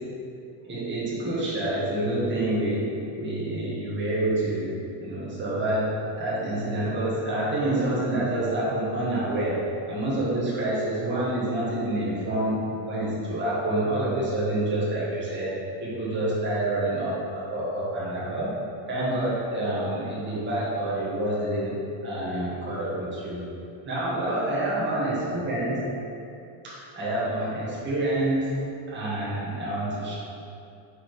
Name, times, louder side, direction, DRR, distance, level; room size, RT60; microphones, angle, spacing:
voice 1, 0.6-15.5 15.8-18.5 18.9-21.7 22.0-23.4 23.8-25.9 26.6-28.6 28.9-30.1, right 1 dB, 25° right, -8 dB, 1.5 m, -27 dB
5.6 x 4.8 x 4.9 m, 2.6 s
cardioid pair, 165°, 49 cm